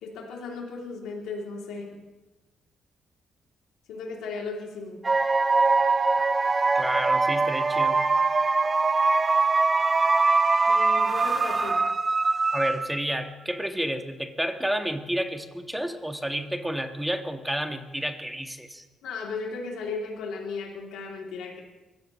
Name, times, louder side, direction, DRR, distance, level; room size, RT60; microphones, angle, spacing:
voice 1, 0.0-1.9 3.9-5.0 10.7-11.8 19.0-21.6, left 4 dB, 90° left, -2 dB, 3.1 m, -35 dB
sound 1, 5.0-13.1, right 3 dB, 30° right, 0.8 m, -22 dB
voice 2, 6.7-8.0 12.5-18.8, equal, 5° right, 6 dB, 1.6 m, -30 dB
23.5 x 16.0 x 3.2 m, 1.1 s
cardioid pair, 90°, 0 cm